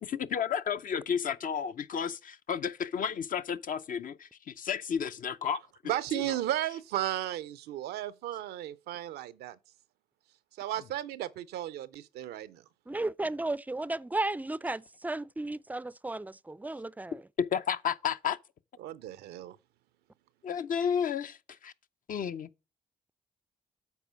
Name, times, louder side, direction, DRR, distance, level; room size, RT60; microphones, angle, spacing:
voice 1, 0.0-5.6 17.4-18.4 20.4-21.4 21.6-21.7 22.1-22.5, left 7 dB, 60° left, 0.5 m, -32 dB
voice 2, 5.9-9.6 10.6-12.6 18.8-19.6, right 13 dB, 80° right, 0.5 m, -34 dB
voice 3, 12.9-17.2, right 2 dB, 10° right, 0.3 m, -34 dB
8.2 x 4.3 x 4.9 m
supercardioid pair, 50°, 16 cm